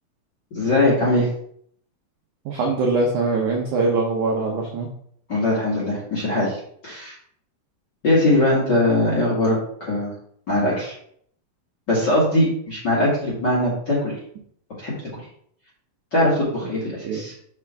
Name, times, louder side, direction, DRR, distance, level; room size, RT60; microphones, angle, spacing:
voice 1, 0.5-1.3 5.3-7.1 8.0-10.1 10.5-10.9 11.9-14.1 14.8-14.9 16.1-17.3, left 1 dB, 40° left, -6 dB, 1.7 m, -21 dB
voice 2, 2.4-4.9 16.6-16.7 17.0-17.2, right 3 dB, 85° right, 0 dB, 1.7 m, -22 dB
6.1 x 6.0 x 3.4 m, 0.65 s
omnidirectional pair, 4.8 m